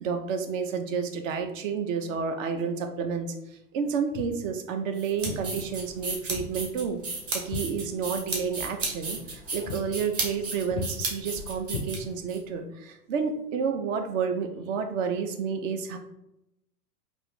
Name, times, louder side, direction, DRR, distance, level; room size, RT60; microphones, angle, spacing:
voice 1, 0.0-3.3 3.7-7.0 7.3-16.0, right 6 dB, 55° right, 6 dB, 0.6 m, -30 dB
Walk footsteps, 4.1-4.4 5.2-5.5 6.3-6.6 6.9-8.3 8.6-8.8 9.2-9.4 9.7-9.9 10.2-10.4 10.7-10.9 11.7-12.4, left 4 dB, 30° left, 0.4 m, -37 dB
sound 1, 5.0-12.4, right 3 dB, 30° right, 1.0 m, -34 dB
3.2 x 2.6 x 3.1 m, 0.85 s
hypercardioid pair, 95°, 47 cm